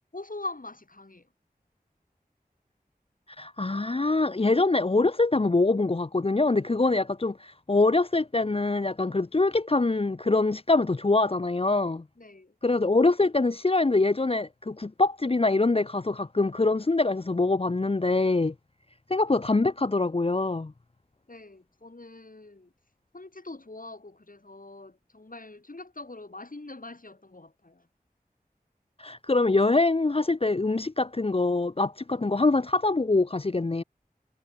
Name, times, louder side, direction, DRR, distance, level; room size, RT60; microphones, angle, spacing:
voice 1, 0.1-1.3 12.2-12.5 21.3-22.7 23.1-27.9, left 2 dB, 60° left, 6.2 m, -43 dB
voice 2, 3.4-12.0 12.6-18.5 19.1-20.7 29.0-33.8, left 3 dB, 35° left, 0.6 m, -24 dB
wide cardioid pair, 45°, 16 cm